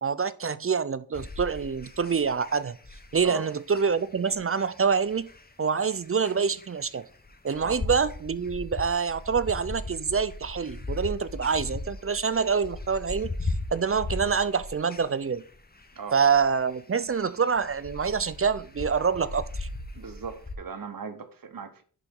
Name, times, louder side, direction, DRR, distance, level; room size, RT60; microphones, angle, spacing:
voice 1, 0.0-2.8 3.1-5.3 5.6-7.0 7.4-15.4 16.1-19.7, right 6 dB, 35° right, 0.5 m, -26 dB
sound 1, 1.1-20.5, left 2 dB, 25° left, 0.9 m, -38 dB
voice 2, 19.9-21.8, right 5 dB, 60° right, 1.1 m, -38 dB
11.0 x 3.9 x 3.7 m
cardioid pair, 55°, 39 cm